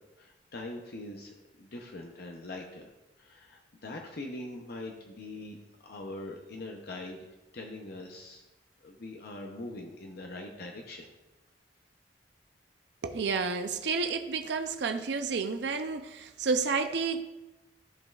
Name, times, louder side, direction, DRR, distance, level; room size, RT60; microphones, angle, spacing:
voice 1, 0.2-8.4 8.8-11.1, left 2 dB, 60° left, 1 dB, 0.7 m, -43 dB
voice 2, 13.0-17.2, right 4 dB, 70° right, 7 dB, 0.5 m, -30 dB
14.0 x 5.3 x 2.4 m, 1.0 s
head